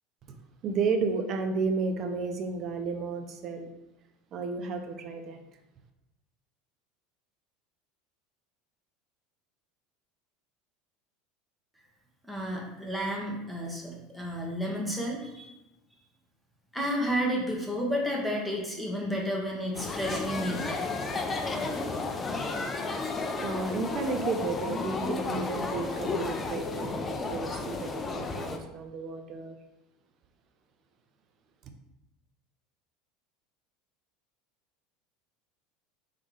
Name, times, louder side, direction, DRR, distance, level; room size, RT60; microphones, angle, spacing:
voice 1, 0.6-3.7 4.3-5.4 23.4-29.6, right 4 dB, 45° right, 6 dB, 0.6 m, -32 dB
voice 2, 12.3-15.5 16.7-20.9, equal, 5° right, -3 dB, 1.2 m, -31 dB
sound 1, 19.7-28.6, left 3 dB, 25° left, 0.5 m, -33 dB
3.7 x 3.5 x 3.2 m, 0.95 s
figure-of-eight pair, 75°, 0 cm